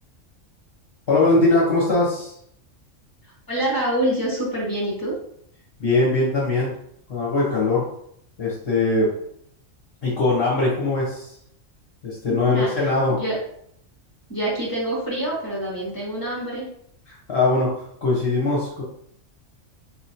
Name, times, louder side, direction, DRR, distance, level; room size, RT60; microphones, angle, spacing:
voice 1, 1.1-2.3 5.8-6.8 7.1-7.8 8.4-9.1 10.0-11.3 12.0-13.2 17.1-18.8, left 2 dB, 50° left, -7 dB, 1.2 m, -21 dB
voice 2, 3.2-5.2 12.3-13.4 14.3-16.7, right 1 dB, 15° left, -5 dB, 1.4 m, -26 dB
4.3 x 3.0 x 2.8 m, 0.69 s
omnidirectional pair, 1.4 m